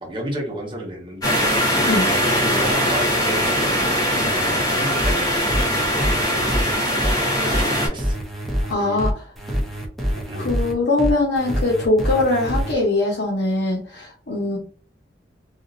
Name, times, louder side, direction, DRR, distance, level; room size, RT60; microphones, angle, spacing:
voice 1, 0.0-1.5 2.1-5.3 5.9-8.2 8.8-9.0 10.3-10.6, right 1 dB, 30° right, -1 dB, 0.9 m, -32 dB
sound 1, 1.2-7.9, equal, 20° left, 1.2 m, -21 dB
sound 2, 5.0-12.7, equal, ahead, 0.7 m, -25 dB
voice 2, 8.7-9.2 10.3-14.6, left 2 dB, 80° left, -4 dB, 0.9 m, -21 dB
3.0 x 2.5 x 2.5 m, 0.41 s
head